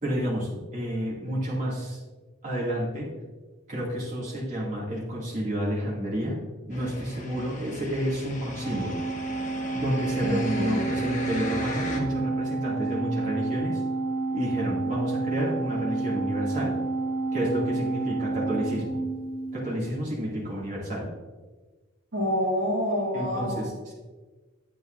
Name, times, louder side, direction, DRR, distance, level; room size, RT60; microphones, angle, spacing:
voice 1, 0.0-2.0 2.4-3.1 3.7-6.4 6.7-8.9 9.7-13.8 14.3-16.8 17.3-19.0 19.5-21.1 23.1-23.9, equal, 40° right, -6 dB, 2.4 m, -30 dB
sound 1, 6.7-12.0, left 2 dB, 40° left, 1.1 m, -38 dB
Organ, 8.6-19.9, right 3 dB, 10° left, 0.9 m, -30 dB
voice 2, 10.2-10.9 22.1-23.8, equal, 65° right, -4 dB, 2.2 m, -28 dB
10.0 x 8.3 x 2.6 m, 1.3 s
head